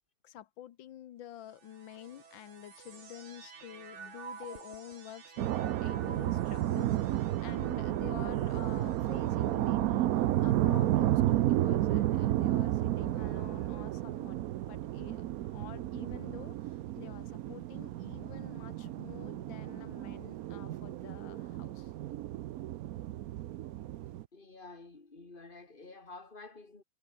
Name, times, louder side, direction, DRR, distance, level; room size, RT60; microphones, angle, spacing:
voice 1, 0.2-14.4 14.7-15.2 15.5-21.9, left 11 dB, 90° left, 1.7 m, -49 dB
sound 1, 1.3-12.8 13.6-14.3, right 6 dB, 40° right, 1.6 m, -52 dB
sound 2, 5.4-24.2, right 14 dB, 70° right, 0.9 m, -32 dB
voice 2, 24.3-26.8, left 3 dB, 25° left, 3.1 m, -50 dB
omnidirectional pair, 2.0 m